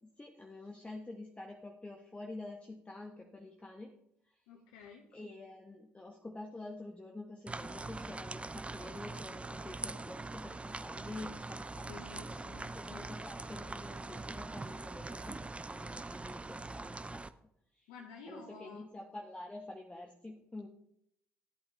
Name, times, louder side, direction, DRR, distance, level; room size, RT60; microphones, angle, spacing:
voice 1, 0.0-3.9 5.1-17.3 17.8-17.9 18.3-20.7, left 2 dB, 20° left, 1 dB, 1.3 m, -48 dB
voice 2, 4.5-5.1 11.8-13.1 17.9-18.8, left 4 dB, 85° left, 1 dB, 1.1 m, -51 dB
sound 1, 7.5-17.3, right 3 dB, 20° right, 0.5 m, -43 dB
13.5 x 8.5 x 3.2 m, 0.74 s
hypercardioid pair, 55°, 7 cm